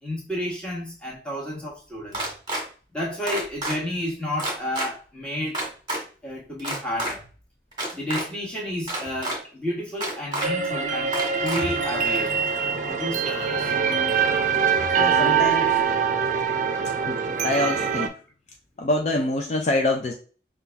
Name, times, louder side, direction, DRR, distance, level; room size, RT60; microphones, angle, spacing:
voice 1, 0.0-2.3 2.9-5.6 6.2-7.2 7.9-12.4 12.8-13.7, left 1 dB, 5° left, 1.3 m, -31 dB
sound 1, 2.1-2.6 3.3-3.8 4.4-4.9 5.5-6.0 6.6-7.1 7.7-8.2 8.9-9.4 10.0-10.5 11.1-11.6, right 1 dB, 25° right, 1.5 m, -28 dB
sound 2, 10.4-18.1, right 6 dB, 45° right, 0.5 m, -23 dB
voice 2, 15.0-15.8 17.0-18.1 18.8-20.1, left 2 dB, 40° left, 0.4 m, -25 dB
5.7 x 2.4 x 3.4 m
head